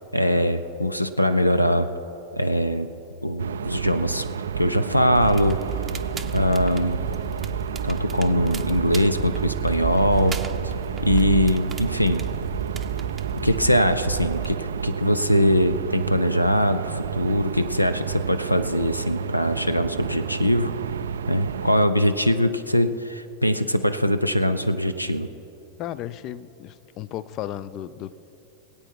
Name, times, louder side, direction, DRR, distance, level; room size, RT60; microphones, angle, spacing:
voice 1, 0.1-1.9 2.3-2.9 3.2-4.3 4.6-5.6 6.3-7.0 7.8-10.7 11.0-12.2 13.4-20.7 21.3-25.3, equal, 90° left, 0.5 m, -22 dB
sound 1, 3.4-21.9, right 7 dB, 65° right, 0.3 m, -31 dB
Crackle, 5.2-14.5, right 7 dB, 20° right, 0.7 m, -33 dB
voice 2, 25.8-28.1, left 12 dB, 35° left, 0.5 m, -34 dB
22.0 x 8.6 x 4.6 m
figure-of-eight pair, 90°, 0 cm